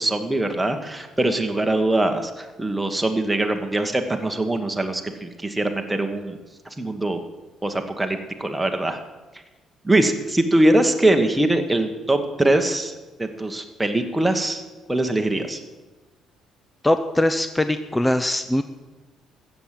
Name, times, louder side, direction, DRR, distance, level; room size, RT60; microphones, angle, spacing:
voice 1, 0.0-6.4 6.8-7.2 7.6-9.0 9.8-12.9 13.2-14.6 14.9-15.6, right 1 dB, 5° right, 4 dB, 1.2 m, -22 dB
voice 2, 16.8-18.6, left 1 dB, 10° left, 10 dB, 0.5 m, -21 dB
15.0 x 7.3 x 7.6 m, 1.2 s
cardioid pair, 135°, 0 cm